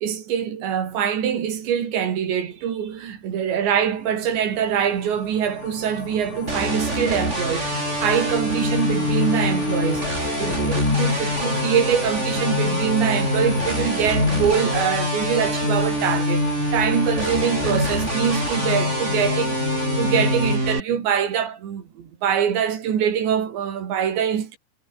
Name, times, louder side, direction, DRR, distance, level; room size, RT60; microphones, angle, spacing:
voice 1, 0.0-7.7 8.0-16.5 16.7-24.6, right 8 dB, 60° right, 5.2 m, -24 dB
sound 1, 4.3-20.6, left 7 dB, 75° left, 7.1 m, -28 dB
sound 2, 6.5-20.8, right 2 dB, 15° right, 5.0 m, -26 dB
omnidirectional pair, 5.8 m